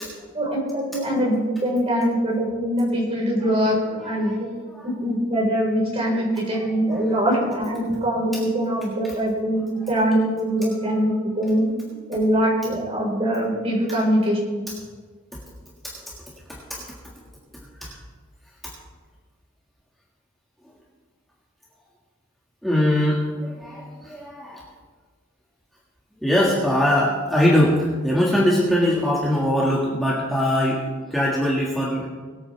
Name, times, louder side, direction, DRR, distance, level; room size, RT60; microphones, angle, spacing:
voice 1, 0.3-4.5 4.8-11.7 12.1-14.6, equal, 30° right, -3 dB, 4.0 m, -23 dB
voice 2, 4.0-4.9 6.1-6.2 6.5-6.6 6.9-7.2 9.8-9.9 10.7-11.0 15.8-16.0 16.5-16.8 17.8-18.0 22.6-24.6 26.2-32.1, left 1 dB, ahead, -6 dB, 1.7 m, -22 dB
22.0 x 8.9 x 3.3 m, 1.5 s
head